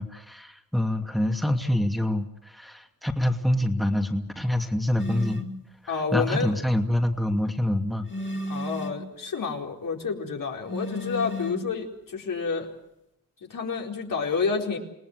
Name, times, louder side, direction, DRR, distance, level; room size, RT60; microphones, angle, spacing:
voice 1, 0.0-5.4 5.8-8.1, left 1 dB, ahead, 3 dB, 2.7 m, -26 dB
sound 1, 5.0-5.6 8.1-9.1 10.7-11.7, left 1 dB, 35° left, 3.4 m, -33 dB
voice 2, 5.9-6.5 8.5-12.7 13.4-14.8, left 5 dB, 65° left, 0 dB, 4.5 m, -29 dB
28.5 x 18.0 x 8.0 m, 0.84 s
cardioid pair, 60°, 35 cm